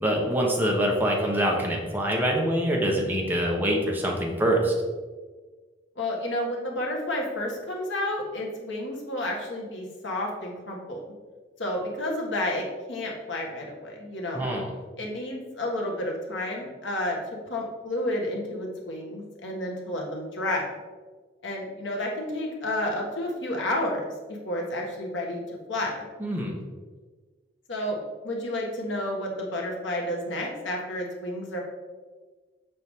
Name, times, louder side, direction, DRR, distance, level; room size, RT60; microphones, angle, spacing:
voice 1, 0.0-4.7 14.3-14.7 26.2-26.6, right 1 dB, 10° right, -1 dB, 1.0 m, -25 dB
voice 2, 6.0-11.0 11.6-14.4 15.0-17.2 17.5-20.7 21.4-25.4 25.7-26.1 27.7-28.0 28.2-31.6, left 1 dB, 80° left, 0 dB, 1.4 m, -31 dB
7.0 x 4.7 x 3.6 m, 1.4 s
head